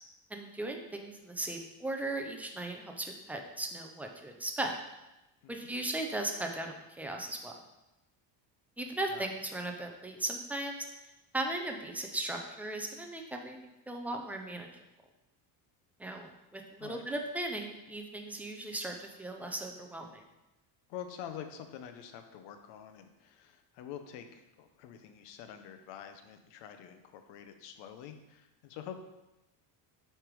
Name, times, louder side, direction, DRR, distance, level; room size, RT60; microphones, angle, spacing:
voice 1, 0.3-4.8 5.5-7.5 8.8-10.8 11.3-14.7 16.0-20.2, right 1 dB, 5° right, 2 dB, 0.4 m, -37 dB
voice 2, 20.9-28.9, left 9 dB, 75° left, 7 dB, 0.8 m, -46 dB
7.3 x 3.4 x 4.7 m, 0.97 s
cardioid pair, 150°, 43 cm